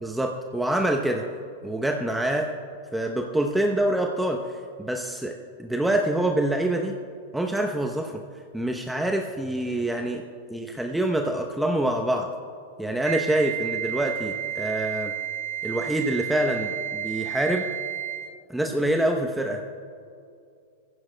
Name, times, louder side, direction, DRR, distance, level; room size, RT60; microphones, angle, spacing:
voice 1, 0.0-1.2 1.6-2.5 2.9-7.0 7.3-8.2 8.5-10.2 10.5-12.3 12.8-15.1 15.6-17.7 18.5-19.6, right 1 dB, 5° right, 2 dB, 0.8 m, -26 dB
Wind instrument woodwind instrument, 13.0-18.4, right 11 dB, 80° right, 1.4 m, -32 dB
19.0 x 15.5 x 2.2 m, 2.4 s
hypercardioid pair, 120°, 0 cm